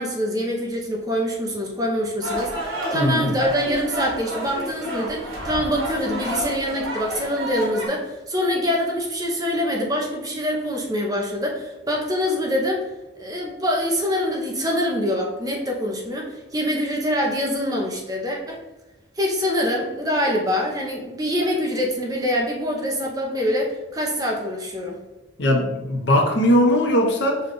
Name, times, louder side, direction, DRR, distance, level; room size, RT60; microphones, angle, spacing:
voice 1, 0.0-12.9 13.2-18.6 19.2-25.0, equal, 20° right, -1 dB, 0.6 m, -25 dB
sound 1, 2.2-7.9, right 1 dB, 85° right, 1.2 m, -30 dB
voice 2, 2.9-3.3 25.4-27.4, equal, 55° left, 1 dB, 0.8 m, -19 dB
5.2 x 2.3 x 3.7 m, 1.1 s
head